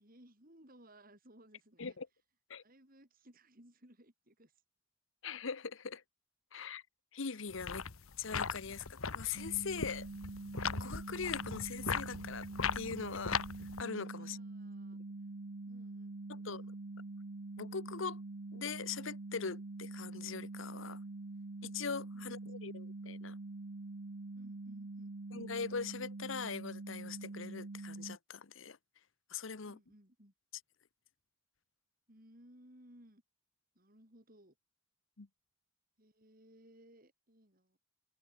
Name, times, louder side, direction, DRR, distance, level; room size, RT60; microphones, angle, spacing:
voice 1, 0.0-2.0 2.6-4.6 14.1-15.0 15.7-16.7 22.1-22.4 24.3-25.1 29.6-30.3 32.1-33.2 33.8-34.6 36.0-37.8, right 1 dB, 45° right, 6.9 m, -61 dB
voice 2, 5.2-6.0 6.5-6.8 7.1-7.9 8.2-10.1 10.7-12.5 12.7-13.4 13.8-14.4 16.3-16.6 17.6-18.2 18.5-21.0 21.6-23.4 25.3-28.8 29.3-29.8 35.2-35.3, left 5 dB, 65° left, 0.9 m, -41 dB
sound 1, 7.5-13.8, left 5 dB, 85° left, 1.3 m, -39 dB
sound 2, 9.3-28.2, right 2 dB, 70° right, 0.9 m, -45 dB
head